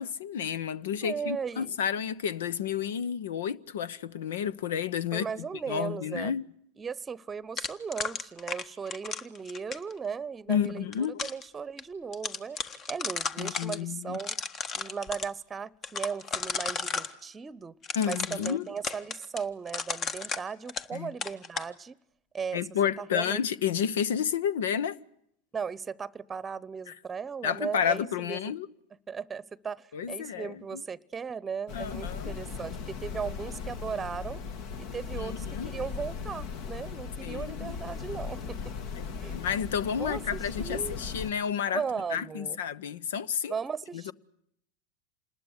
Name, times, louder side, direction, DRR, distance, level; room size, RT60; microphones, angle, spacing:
voice 1, 0.0-5.3 5.7-6.4 10.5-11.2 13.4-14.2 17.9-18.7 20.9-21.1 22.5-25.0 27.4-28.7 29.9-30.5 31.7-32.3 35.2-35.7 37.2-37.7 39.0-41.8 42.1-43.5 43.9-44.1, left 8 dB, 75° left, 0.9 m, -31 dB
voice 2, 1.0-1.8 5.1-6.3 6.8-12.6 12.9-14.4 14.7-17.7 18.1-22.0 22.3-22.6 23.0-23.4 25.5-28.5 29.1-34.4 34.8-38.7 39.2-39.4 40.0-41.0 41.7-42.6 43.5-44.1, right 6 dB, 20° right, 1.0 m, -37 dB
sound 1, 7.6-9.9 10.7-11.4 11.8-11.9 12.1-13.8 14.1-15.3 15.8-17.1 17.8-21.0 21.2-21.7, left 5 dB, 35° left, 1.6 m, -34 dB
sound 2, 31.7-41.3, left 5 dB, 55° left, 1.8 m, -38 dB
27.5 x 20.5 x 8.3 m
hypercardioid pair, 95°, 0 cm